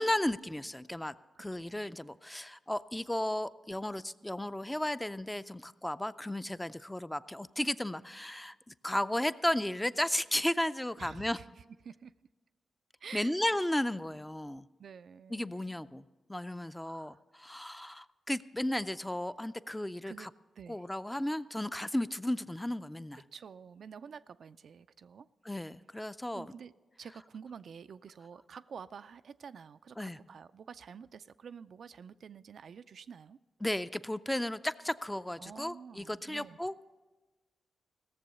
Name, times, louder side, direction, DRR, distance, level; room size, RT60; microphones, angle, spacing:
voice 1, 0.0-11.4 13.1-14.6 15.3-16.0 16.3-20.3 20.7-23.2 25.5-26.5 30.0-30.2 33.6-36.9, left 1 dB, 10° left, 0.4 m, -34 dB
voice 2, 11.0-12.1 13.0-13.3 14.8-15.5 16.8-17.2 20.0-20.3 20.6-20.9 23.1-25.3 26.3-26.7 27.0-33.4 35.4-36.6, right 6 dB, 70° right, 0.3 m, -49 dB
16.5 x 7.0 x 6.8 m
cardioid pair, 60°, 0 cm